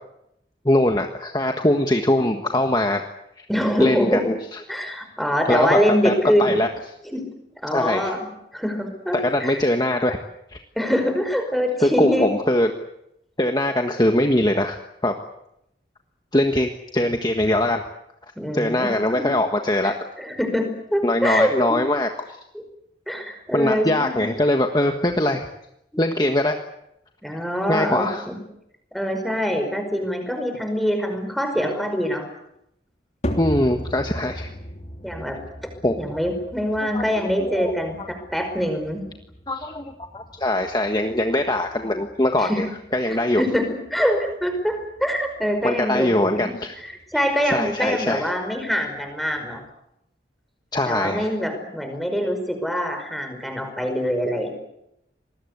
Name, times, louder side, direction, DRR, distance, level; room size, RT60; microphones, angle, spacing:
voice 1, 0.6-3.0 3.4-3.5 3.8-4.6 5.5-5.8 6.0-6.1 6.4-6.7 7.7-8.1 9.1-10.2 10.5-10.6 11.8-12.7 13.4-15.1 16.3-17.8 18.5-19.9 21.0-22.3 23.5-25.5 26.0-26.5 27.7-28.2 33.4-34.5 35.8-36.0 36.9-37.0 37.4-37.7 39.5-42.6 42.9-43.4 45.6-46.7 47.4-48.2 50.7-51.3, left 1 dB, 20° left, 4 dB, 1.5 m, -22 dB
voice 2, 3.5-4.2 4.7-6.6 7.1-7.3 7.6-8.3 8.5-9.5 10.8-12.3 18.4-19.3 19.8-21.5 22.5-22.6 23.1-24.3 27.2-28.4 28.9-32.2 35.0-35.4 36.0-39.0 42.4-42.6 43.1-46.4 47.1-49.6 50.9-54.5, equal, ahead, 5 dB, 5.2 m, -24 dB
sound 1, 33.2-49.7, equal, 40° left, 3.2 m, -38 dB
26.5 x 20.5 x 8.2 m, 0.81 s
head